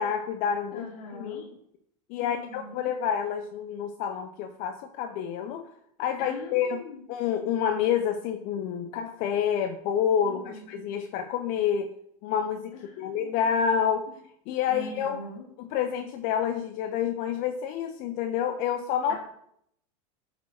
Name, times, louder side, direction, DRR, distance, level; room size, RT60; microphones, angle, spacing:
voice 1, 0.0-1.5 2.1-5.7 6.0-6.8 7.1-11.9 12.2-14.1 14.5-15.2 15.6-19.2, left 8 dB, 50° left, 7 dB, 0.6 m, -28 dB
voice 2, 0.7-1.5 2.2-2.9 6.2-7.1 10.2-10.7 12.7-13.4 14.7-15.5 19.1-19.2, left 3 dB, 80° left, -3 dB, 1.8 m, -42 dB
8.4 x 4.3 x 4.3 m, 0.73 s
supercardioid pair, 115°, 19 cm